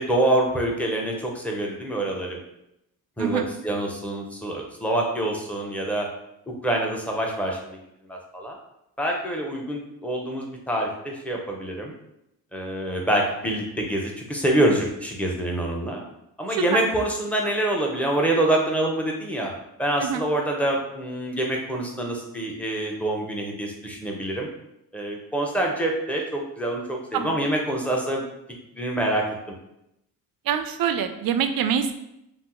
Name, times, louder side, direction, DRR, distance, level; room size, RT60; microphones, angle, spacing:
voice 1, 0.0-2.4 3.2-6.1 6.5-7.8 8.1-8.5 9.0-11.9 12.5-16.0 16.4-19.5 19.8-24.5 24.9-28.2 28.7-29.3, right 1 dB, 5° left, -1 dB, 0.8 m, -26 dB
voice 2, 30.5-31.9, right 8 dB, 50° right, 8 dB, 0.5 m, -25 dB
2.7 x 2.0 x 3.7 m, 0.83 s
hypercardioid pair, 50°, 45 cm